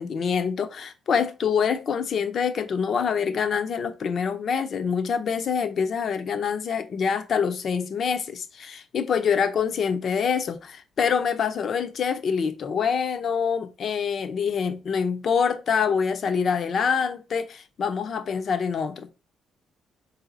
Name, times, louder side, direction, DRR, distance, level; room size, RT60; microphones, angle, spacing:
voice 1, 0.0-19.1, left 6 dB, 55° left, 0.6 m, -25 dB
3.9 x 2.7 x 3.9 m
cardioid pair, 90°, 0 cm